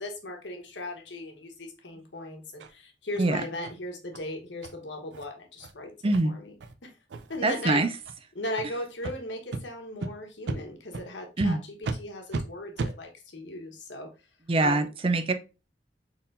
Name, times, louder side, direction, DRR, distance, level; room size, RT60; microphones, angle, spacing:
voice 1, 0.0-5.9 6.2-6.5 6.8-6.9 7.3-7.8 8.4-11.6 12.0-14.1 14.6-14.9, left 1 dB, 90° left, 1.2 m, -37 dB
sound 1, 2.6-2.7 3.1-3.2 3.6-3.8 4.1-4.2 4.6-4.7 5.1-5.3 5.6-5.7 6.1-6.2 6.6-6.7 7.1-7.4 8.0-8.1 8.5-8.7 9.0-9.1 9.5-9.6 10.0-10.1 10.5-10.6 10.9-11.1 11.4-11.5 11.8-12.0 12.3-12.4 12.8-12.9, right 3 dB, 80° right, 0.5 m, -34 dB
voice 2, 6.0-6.4 7.4-8.0 11.4-11.6 14.5-15.3, right 2 dB, 30° right, 0.4 m, -24 dB
4.4 x 3.7 x 2.6 m
head